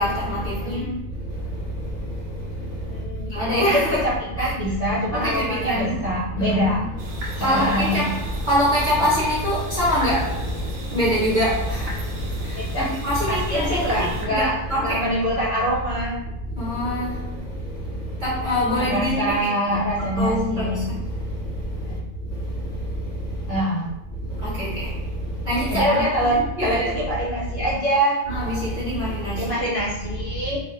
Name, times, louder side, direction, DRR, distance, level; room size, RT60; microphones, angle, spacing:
voice 1, 0.0-0.8 1.1-4.1 4.4-4.8 5.1-15.2 16.5-23.6 24.1-27.0 27.5-27.7 28.3-29.5 30.0-30.6, equal, 45° right, 0.8 m, -26 dB
voice 2, 0.6-1.0 2.9-6.8 7.3-8.1 12.5-12.9 13.3-16.1 18.7-20.9 21.9-22.0 23.5-23.9 25.7-28.2 29.4-30.6, equal, 50° left, 1.0 m, -24 dB
sound 1, 7.0-14.3, equal, 70° right, 0.3 m, -32 dB
2.4 x 2.0 x 3.0 m
omnidirectional pair, 1.3 m